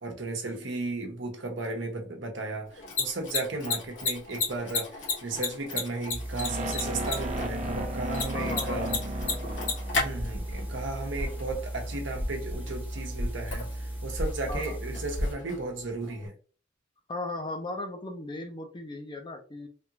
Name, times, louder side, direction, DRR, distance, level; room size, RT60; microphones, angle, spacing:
voice 1, 0.0-9.0 9.9-16.3, right 2 dB, 75° right, 0.9 m, -35 dB
Mechanisms, 2.7-16.3, left 4 dB, 75° left, 1.4 m, -36 dB
sound 1, 6.1-15.3, equal, 10° right, 0.9 m, -35 dB
sound 2, 6.4-10.5, right 1 dB, 35° right, 0.6 m, -35 dB
voice 2, 8.3-9.0 14.5-14.8 17.1-19.7, left 2 dB, 25° left, 0.6 m, -37 dB
3.4 x 2.4 x 2.9 m
head